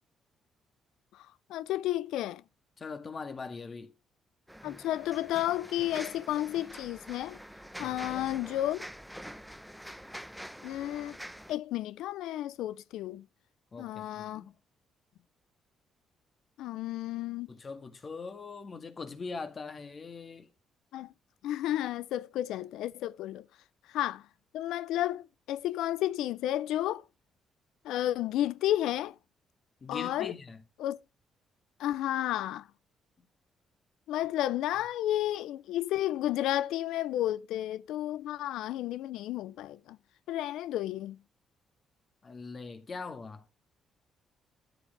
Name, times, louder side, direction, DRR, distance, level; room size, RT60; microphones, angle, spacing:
voice 1, 1.5-2.4 4.6-7.4 7.8-8.9 10.6-11.2 11.5-13.2 13.8-14.4 16.6-17.5 20.9-21.1 21.4-23.4 23.9-24.2 24.5-27.0 27.8-29.1 29.9-30.3 30.8-31.0 31.8-32.7 34.1-40.0 40.3-41.2, left 13 dB, 90° left, 0.5 m, -32 dB
voice 2, 2.8-3.9 7.8-8.2 13.7-14.5 17.5-20.5 29.8-30.6 42.2-43.4, left 4 dB, 40° left, 1.8 m, -42 dB
sound 1, 4.5-11.5, equal, ahead, 0.8 m, -46 dB
13.0 x 8.1 x 3.3 m
cardioid pair, 90°, 0 cm